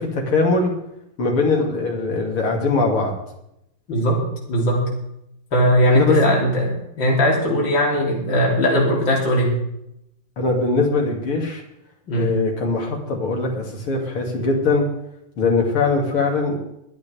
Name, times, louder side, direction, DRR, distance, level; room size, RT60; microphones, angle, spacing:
voice 1, 0.1-0.7 1.2-3.2 5.9-6.2 10.4-11.6 12.1-14.9 15.4-16.6, left 3 dB, 90° left, 0 dB, 3.5 m, -21 dB
voice 2, 3.9-4.9 5.5-9.6 12.1-12.3, equal, 60° left, -3 dB, 4.1 m, -19 dB
23.0 x 10.5 x 3.5 m, 0.80 s
omnidirectional pair, 2.3 m